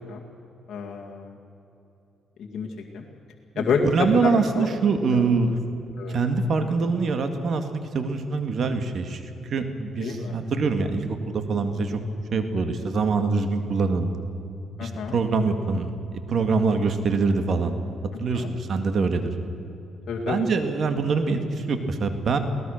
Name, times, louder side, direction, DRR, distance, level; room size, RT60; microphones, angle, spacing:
voice 1, 0.7-1.3 2.4-3.0 3.6-4.8 5.1-5.2 6.0-6.2 10.0-10.4 14.8-15.2 18.3-18.5 20.1-20.5, left 5 dB, 60° left, -1 dB, 2.1 m, -28 dB
voice 2, 3.9-5.5 6.1-7.7 7.9-12.0 12.3-14.1 14.8-17.7 18.2-19.3 20.3-22.4, right 4 dB, 55° right, 7 dB, 2.1 m, -24 dB
22.5 x 18.0 x 6.6 m, 2.9 s
cardioid pair, 90°, 0 cm